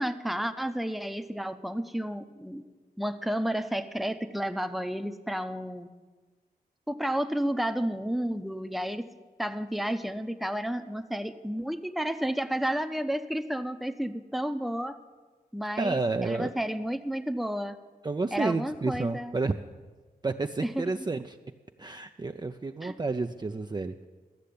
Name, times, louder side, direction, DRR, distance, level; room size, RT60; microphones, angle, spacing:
voice 1, 0.0-2.6 3.0-5.9 6.9-9.1 9.4-15.0 15.5-17.8 18.3-19.4 20.6-20.8 22.8-23.0, equal, ahead, 9 dB, 0.8 m, -31 dB
voice 2, 15.8-16.5 18.0-19.6 20.2-21.4 21.8-24.1, right 3 dB, 25° right, 6 dB, 0.5 m, -30 dB
13.0 x 6.6 x 8.5 m, 1.3 s
cardioid pair, 45°, 16 cm